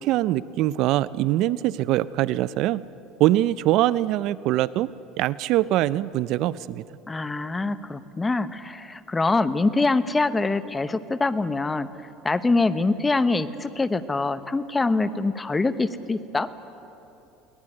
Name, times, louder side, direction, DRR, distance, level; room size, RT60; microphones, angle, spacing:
voice 1, 0.0-2.8 3.2-4.9 5.2-6.8, right 15 dB, 60° right, 18 dB, 0.5 m, -23 dB
voice 2, 7.1-11.9 12.2-16.5, left 3 dB, 15° left, 13 dB, 0.9 m, -24 dB
22.5 x 17.5 x 9.8 m, 2.9 s
supercardioid pair, 115°, 0 cm